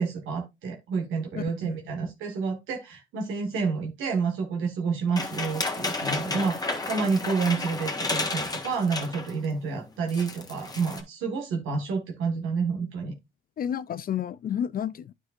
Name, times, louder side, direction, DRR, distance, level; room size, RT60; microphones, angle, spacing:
voice 1, 0.0-13.2, right 5 dB, 85° right, 1.7 m, -29 dB
voice 2, 1.4-1.8 13.6-15.1, left 9 dB, 45° left, 0.4 m, -31 dB
sound 1, 5.2-9.4 9.7-9.8 10.1-11.0, left 3 dB, 20° left, 1.4 m, -32 dB
9.5 x 5.3 x 2.5 m
cardioid pair, 90°, 20 cm